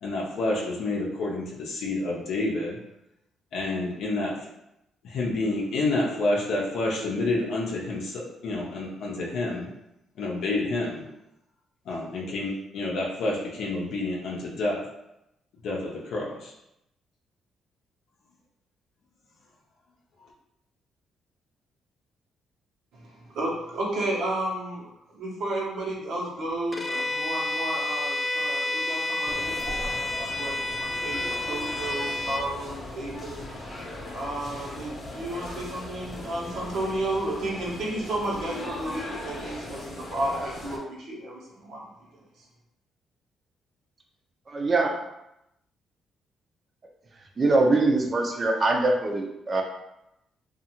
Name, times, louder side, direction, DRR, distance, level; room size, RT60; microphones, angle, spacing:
voice 1, 0.0-2.8 3.5-4.4 5.0-9.7 10.2-11.0 11.9-14.8 15.6-16.5, left 2 dB, 75° left, -3 dB, 0.5 m, -29 dB
voice 2, 22.9-24.9 25.1-33.3 34.1-41.9 42.4-42.5, right 1 dB, 70° right, -3 dB, 0.9 m, -32 dB
Bowed string instrument, 26.7-32.5, left 2 dB, 20° left, 0.3 m, -30 dB
sound 1, 29.2-40.8, left 1 dB, 45° left, 0.7 m, -38 dB
voice 3, 44.5-44.9 47.4-49.6, right 2 dB, 40° right, 2 dB, 0.5 m, -23 dB
2.6 x 2.4 x 2.8 m, 0.86 s
cardioid pair, 90°, 0 cm